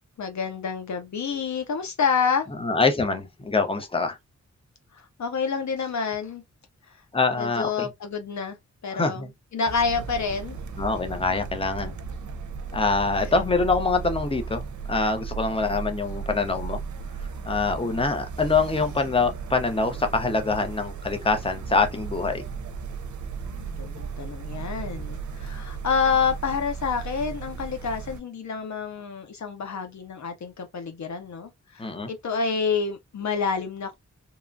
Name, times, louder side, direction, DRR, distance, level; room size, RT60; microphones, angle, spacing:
voice 1, 0.2-2.5 4.9-6.4 6.9-7.0 7.4-8.6 8.8-10.6 13.2-13.3 23.4-33.9, left 5 dB, 65° left, 0.6 m, -28 dB
voice 2, 2.6-4.2 7.1-7.9 8.9-9.3 10.8-11.9 12.7-14.6 14.9-16.8 17.4-22.4 31.8-32.1, left 4 dB, 20° left, 0.7 m, -24 dB
sound 1, 9.7-28.2, right 5 dB, 70° right, 0.6 m, -35 dB
3.0 x 2.2 x 2.5 m
cardioid pair, 70°, 30 cm